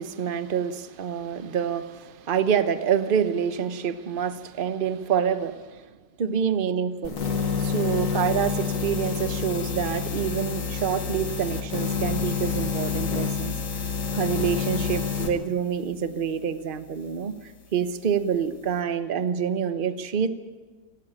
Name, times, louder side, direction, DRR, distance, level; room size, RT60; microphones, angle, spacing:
voice 1, 0.0-5.8 6.2-7.2 7.6-13.5 14.1-17.4 17.7-20.3, right 8 dB, 35° right, 11 dB, 0.9 m, -27 dB
sound 1, 7.0-15.3, left 6 dB, 80° left, 2.5 m, -28 dB
28.5 x 12.5 x 9.0 m, 1.4 s
omnidirectional pair, 1.9 m